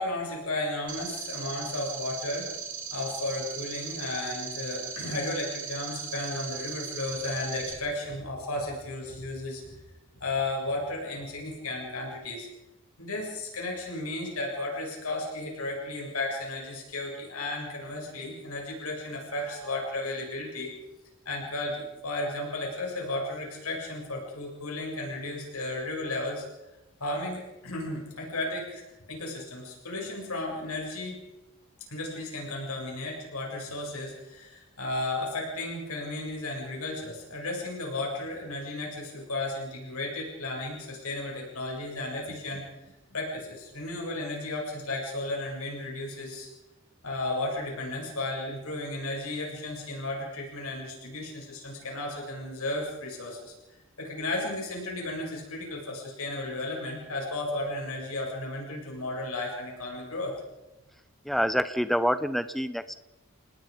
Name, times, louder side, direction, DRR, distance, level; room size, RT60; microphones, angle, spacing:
voice 1, 0.0-2.5 2.9-9.7 10.1-12.5 13.0-20.7 21.3-26.4 27.0-31.2 31.9-42.6 43.1-46.5 47.0-53.5 54.0-60.3, left 2 dB, 80° left, -1 dB, 7.4 m, -34 dB
sound 1, 0.9-7.7, right 7 dB, 35° right, 4.0 m, -38 dB
voice 2, 61.2-62.9, equal, ahead, 12 dB, 0.8 m, -27 dB
30.0 x 20.0 x 5.3 m, 1.0 s
head